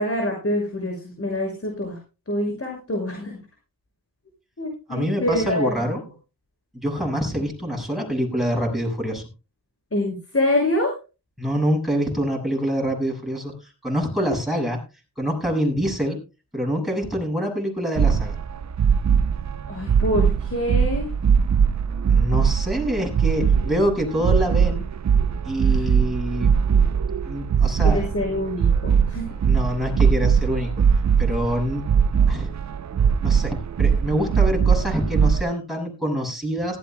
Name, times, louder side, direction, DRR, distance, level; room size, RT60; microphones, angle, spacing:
voice 1, 0.0-2.0 2.3-3.4 4.6-5.7 7.4-7.5 9.9-10.9 19.7-21.1 25.7-25.9 27.8-29.3, left 1 dB, 35° left, 1 dB, 6.6 m, -25 dB
voice 2, 4.9-6.0 6.7-9.2 11.4-14.8 15.2-16.2 16.5-18.4 22.1-24.9 25.4-26.5 27.2-28.1 29.4-30.7 31.2-31.8 32.3-32.5 33.2-36.8, equal, ahead, -1 dB, 7.2 m, -25 dB
sound 1, 18.0-35.4, right 7 dB, 45° right, 0.6 m, -21 dB
18.0 x 15.5 x 2.3 m, 0.31 s
cardioid pair, 70°, 39 cm